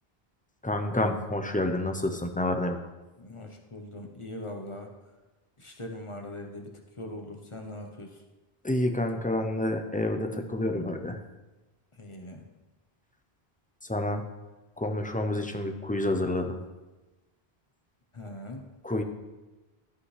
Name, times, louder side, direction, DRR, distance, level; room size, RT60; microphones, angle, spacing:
voice 1, 0.6-2.8 8.6-11.2 13.9-14.2 14.8-16.6 18.8-19.0, left 1 dB, 10° left, 5 dB, 0.4 m, -28 dB
voice 2, 3.2-4.9 5.6-6.7 7.0-8.2 11.9-12.4 18.1-18.6, left 1 dB, 35° left, 3 dB, 0.8 m, -41 dB
12.5 x 5.5 x 3.2 m, 1.1 s
omnidirectional pair, 1.0 m